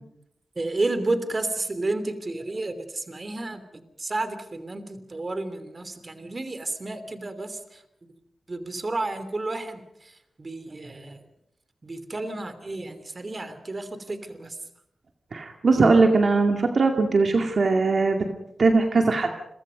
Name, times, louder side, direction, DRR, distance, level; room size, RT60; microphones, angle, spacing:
voice 1, 0.5-8.1 8.5-11.2 11.8-14.6, right 2 dB, 35° right, 11 dB, 3.0 m, -31 dB
voice 2, 15.3-18.3 18.6-19.3, right 3 dB, 55° right, 4 dB, 2.2 m, -20 dB
29.5 x 23.0 x 5.2 m, 0.78 s
wide cardioid pair, 85°, 0 cm